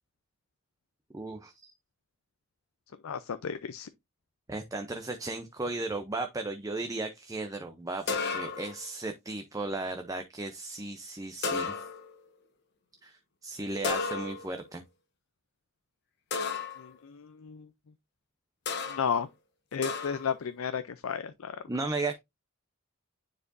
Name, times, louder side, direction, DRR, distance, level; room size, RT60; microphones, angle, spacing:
voice 1, 1.1-1.7 4.5-11.8 13.0-14.8 21.7-22.2, right 2 dB, 15° right, 0.5 m, -35 dB
voice 2, 3.0-3.9 16.8-17.7 18.9-19.3 19.7-21.6, left 6 dB, 80° left, 0.5 m, -33 dB
sound 1, 8.1-8.8 11.4-12.2 13.8-14.6 16.3-16.9 18.7-19.1 19.8-20.3, left 4 dB, 50° left, 1.2 m, -33 dB
9.7 x 4.5 x 2.6 m
head